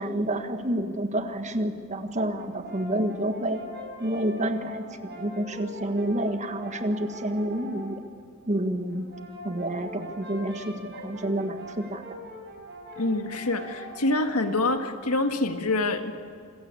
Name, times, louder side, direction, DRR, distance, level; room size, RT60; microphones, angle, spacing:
voice 1, 0.0-3.6 4.0-8.0 8.5-9.1 9.4-12.2, right 1 dB, 35° right, 8 dB, 1.5 m, -29 dB
Brass instrument, 2.3-7.9 8.9-14.7, equal, 50° right, 6.6 m, -42 dB
voice 2, 13.0-16.1, left 2 dB, 80° left, 7 dB, 1.8 m, -26 dB
26.5 x 16.0 x 8.4 m, 2.3 s
head